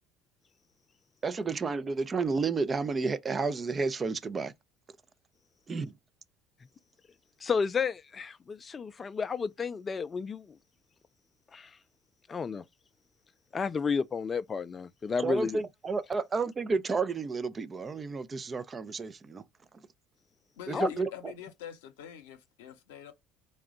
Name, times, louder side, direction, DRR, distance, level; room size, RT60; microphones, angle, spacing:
voice 1, 1.2-4.5 5.7-5.9 15.2-19.4 20.7-21.1, right 4 dB, 30° right, 0.5 m, -31 dB
voice 2, 7.4-10.6 11.5-11.7 12.3-12.6 13.5-15.6 20.7-20.9, left 5 dB, 35° left, 0.4 m, -32 dB
voice 3, 20.6-23.1, left 10 dB, 85° left, 0.7 m, -45 dB
3.8 x 2.2 x 3.7 m
hypercardioid pair, 75°, 0 cm